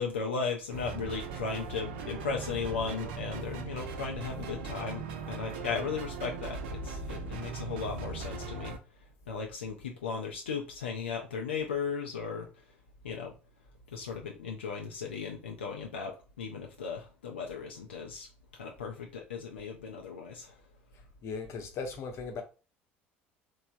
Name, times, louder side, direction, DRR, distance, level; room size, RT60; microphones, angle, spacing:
voice 1, 0.0-8.8 9.3-12.5 13.0-13.3 13.9-18.3 18.6-20.5, left 5 dB, 85° left, 0.4 m, -36 dB
sound 1, 0.7-8.8, right 4 dB, 75° right, 0.4 m, -39 dB
voice 2, 21.2-22.4, left 4 dB, 50° left, 0.7 m, -37 dB
3.1 x 2.1 x 2.5 m
figure-of-eight pair, 60°, 6 cm